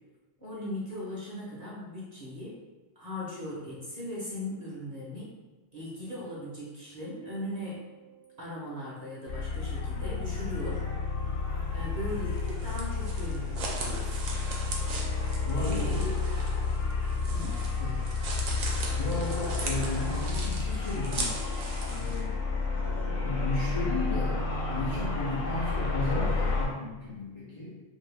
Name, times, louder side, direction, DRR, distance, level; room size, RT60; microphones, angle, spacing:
voice 1, 0.4-2.5 3.0-5.3 5.7-7.8 8.4-10.8 11.7-14.3 15.5-16.0 17.3-17.6, left 1 dB, 40° right, -7 dB, 0.7 m, -38 dB
sound 1, 7.3-10.5 10.8-25.2, right 4 dB, 55° right, 1.1 m, -52 dB
sound 2, 9.3-26.7, left 4 dB, 80° left, 1.1 m, -31 dB
sound 3, 12.1-22.2, right 3 dB, 80° right, 1.0 m, -39 dB
voice 2, 15.5-16.2 17.8-18.0 18.9-21.4 21.9-22.4 23.2-24.4 24.7-27.8, left 2 dB, 50° left, -7 dB, 0.4 m, -34 dB
2.7 x 2.7 x 3.2 m, 1.2 s
omnidirectional pair, 1.4 m